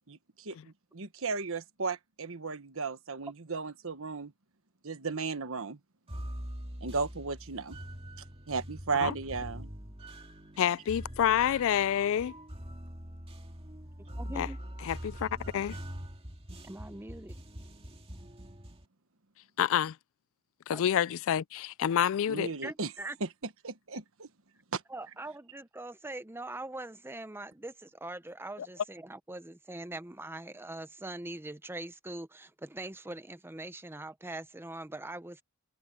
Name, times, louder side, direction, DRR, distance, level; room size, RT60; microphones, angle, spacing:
voice 1, 0.1-4.3 4.8-5.8 6.8-7.8 8.5-9.7 22.3-22.9 23.2-23.3 23.6-24.3 24.7-24.8, right 4 dB, 65° right, 1.3 m, -35 dB
sound 1, 6.1-18.8, equal, 25° right, 2.1 m, -43 dB
voice 2, 10.6-12.3 14.4-14.5 14.8-15.8 19.6-20.0 20.7-22.5, left 9 dB, 60° left, 0.3 m, -28 dB
voice 3, 14.2-14.6 16.6-17.4 20.7-20.8 22.6-23.2 24.9-35.4, right 2 dB, 10° right, 0.7 m, -42 dB
head